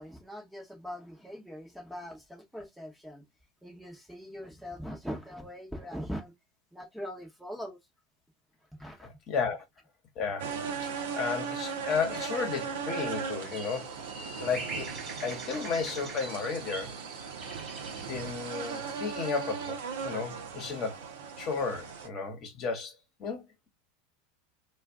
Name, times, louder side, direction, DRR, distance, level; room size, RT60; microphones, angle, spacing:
voice 1, 0.0-3.2 3.6-6.3 6.7-7.8 8.8-9.2, equal, ahead, 0.9 m, -41 dB
voice 2, 9.0-9.6 10.2-10.5 10.8-13.9 14.4-14.9 15.2-17.0 17.4-17.5 18.0-19.8 20.0-21.0 21.4-22.9 23.2-23.7, left 5 dB, 45° left, 1.1 m, -33 dB
sound 1, 10.4-22.1, right 6 dB, 70° right, 0.7 m, -38 dB
sound 2, 13.5-19.7, right 4 dB, 35° right, 1.1 m, -44 dB
2.4 x 2.3 x 3.4 m
hypercardioid pair, 85°, 0 cm